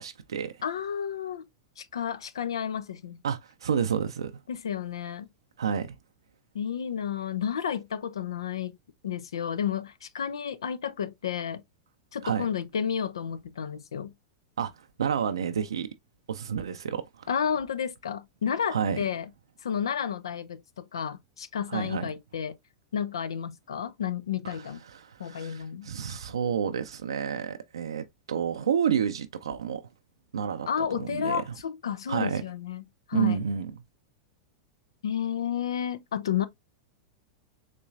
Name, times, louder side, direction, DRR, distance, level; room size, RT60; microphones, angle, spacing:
voice 1, 0.0-0.6 3.2-4.3 5.6-6.0 12.2-12.4 14.6-14.7 15.0-15.9 16.3-17.3 18.7-19.0 21.7-22.1 24.4-24.6 25.0-29.9 30.3-30.7 31.0-31.4 32.1-32.4 33.1-33.7, right 7 dB, 85° right, 0.4 m, -29 dB
voice 2, 0.6-1.5 1.8-3.2 4.5-5.3 6.5-8.8 9.0-11.6 12.1-14.1 17.3-19.3 19.6-22.6 22.9-24.8 25.2-25.9 30.7-32.8 33.1-33.4 35.0-36.5, left 8 dB, 80° left, 0.5 m, -31 dB
4.2 x 3.0 x 2.4 m
hypercardioid pair, 100°, 3 cm